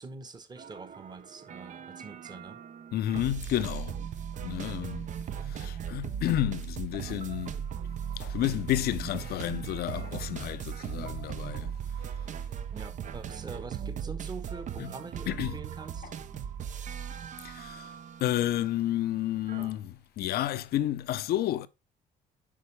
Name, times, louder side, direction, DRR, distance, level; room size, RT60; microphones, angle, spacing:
voice 1, 0.0-2.6 12.7-16.1, right 4 dB, 25° right, 1.1 m, -44 dB
sound 1, 0.6-19.7, right 8 dB, 45° right, 0.7 m, -38 dB
voice 2, 2.9-4.0 4.4-5.1 5.4-7.6 8.2-11.8 14.8-14.9 15.3-15.6 16.0-16.1 17.4-17.9 18.2-21.7, left 13 dB, 65° left, 0.7 m, -31 dB
8.6 x 5.3 x 3.3 m
cardioid pair, 110°, 17 cm